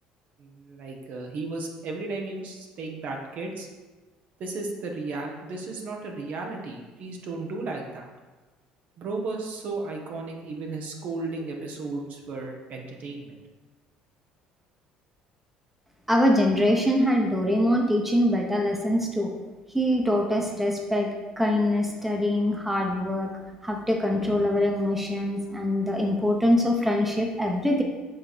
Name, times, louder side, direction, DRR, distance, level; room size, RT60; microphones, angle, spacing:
voice 1, 0.4-3.7 4.4-8.1 9.0-13.4, right 3 dB, 60° right, 1 dB, 1.1 m, -34 dB
voice 2, 16.1-19.3 19.7-21.1 21.4-23.3 23.6-27.8, left 1 dB, 5° right, 1 dB, 0.9 m, -23 dB
7.7 x 3.1 x 4.1 m, 1.2 s
supercardioid pair, 75°, 3 cm